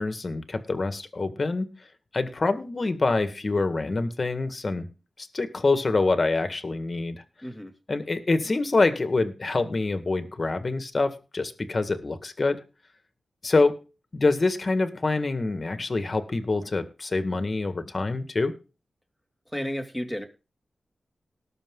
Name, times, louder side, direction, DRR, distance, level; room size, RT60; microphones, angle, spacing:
voice 1, 0.0-1.7 2.1-4.9 5.2-7.2 7.9-12.6 13.4-13.7 14.1-18.5, left 3 dB, 40° left, 9 dB, 1.8 m, -26 dB
voice 2, 7.4-7.7 19.5-20.3, equal, ahead, 4 dB, 2.5 m, -32 dB
19.0 x 6.6 x 3.8 m, 0.31 s
wide cardioid pair, 90°, 0 cm